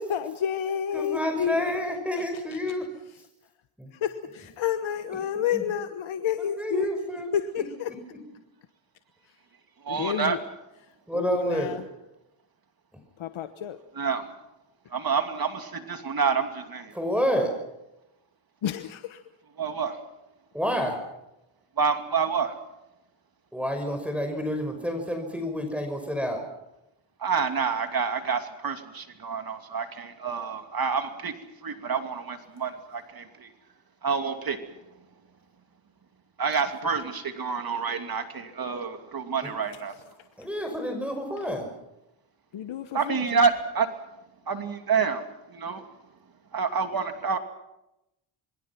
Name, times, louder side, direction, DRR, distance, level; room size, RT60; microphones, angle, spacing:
voice 1, 0.0-1.7 2.2-2.3 3.9-6.9 7.3-7.9 9.9-10.4 11.1-11.8 13.2-13.8 18.6-19.2 42.5-43.4, left 9 dB, 70° left, 9 dB, 1.2 m, -30 dB
voice 2, 0.9-2.9 3.8-3.9 5.5-5.6 6.4-7.3 9.9-10.3 11.1-11.8 16.9-17.5 20.5-21.0 23.5-26.4 40.4-41.7, equal, 5° right, 3 dB, 5.7 m, -29 dB
voice 3, 9.8-10.4 14.0-14.3 14.9-16.9 19.6-20.0 21.8-22.5 27.2-31.3 31.6-33.5 34.0-34.6 36.4-39.9 42.9-43.9 44.5-45.2 45.5-45.8 46.5-47.4, right 5 dB, 45° right, 7 dB, 2.8 m, -28 dB
27.5 x 22.0 x 6.0 m, 0.89 s
cardioid pair, 85°, 48 cm